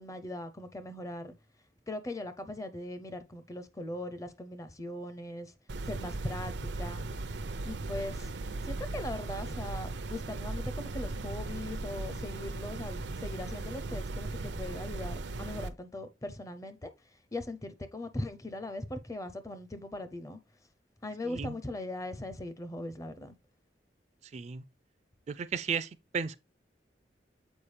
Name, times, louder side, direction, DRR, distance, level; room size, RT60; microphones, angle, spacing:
voice 1, 0.0-1.3 1.9-5.5 5.8-7.0 7.6-8.3 8.6-16.9 17.3-20.4 21.0-23.3, left 1 dB, 20° left, 0.5 m, -40 dB
sound 1, 5.7-15.7, right 2 dB, 85° right, 0.6 m, -37 dB
voice 2, 21.2-21.6 24.3-24.6 25.3-26.4, right 6 dB, 40° right, 0.3 m, -34 dB
7.1 x 4.5 x 3.2 m
head